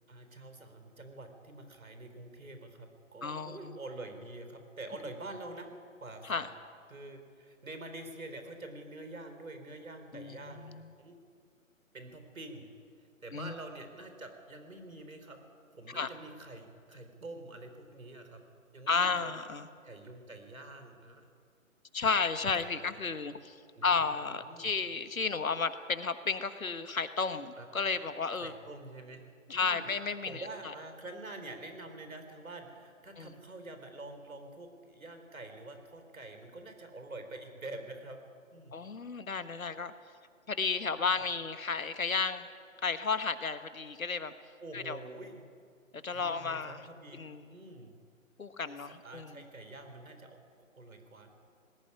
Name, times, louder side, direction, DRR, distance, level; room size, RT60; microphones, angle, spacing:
voice 1, 0.1-5.7 6.0-6.5 6.9-10.7 11.0-11.2 11.9-12.7 13.2-15.4 15.7-18.4 18.7-19.3 19.8-21.3 22.7-22.9 23.8-24.7 27.6-27.7 28.3-29.2 29.5-29.9 30.2-38.2 38.5-38.7 41.0-41.1 44.6-45.4 46.1-47.9 49.0-50.4 50.8-51.3, right 2 dB, 75° right, 6 dB, 4.2 m, -46 dB
voice 2, 3.2-3.7 6.2-6.5 10.1-10.9 13.3-13.5 15.9-16.1 18.9-19.7 21.9-23.6 23.8-28.5 29.5-30.5 33.2-33.3 38.7-39.9 40.5-42.5 42.8-44.3 44.7-45.0 46.0-46.9 47.2-47.5 48.4-49.5, left 5 dB, 75° left, 11 dB, 1.5 m, -33 dB
20.0 x 15.5 x 9.9 m, 2.2 s
figure-of-eight pair, 140°, 42 cm